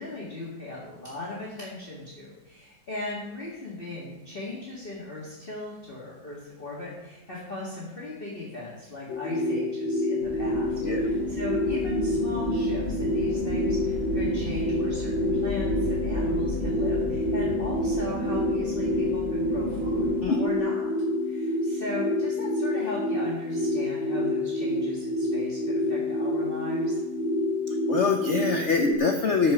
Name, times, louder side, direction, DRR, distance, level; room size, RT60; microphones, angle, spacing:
voice 1, 0.0-20.9 21.2-27.0, left 2 dB, 30° left, -6 dB, 2.0 m, -38 dB
sound 1, 9.1-29.0, left 1 dB, 85° left, 1.8 m, -28 dB
sound 2, 10.2-20.2, equal, 35° right, 1.7 m, -32 dB
voice 2, 27.9-29.5, left 4 dB, 50° left, 4 dB, 0.9 m, -24 dB
14.0 x 5.3 x 5.9 m, 1.1 s
omnidirectional pair, 2.0 m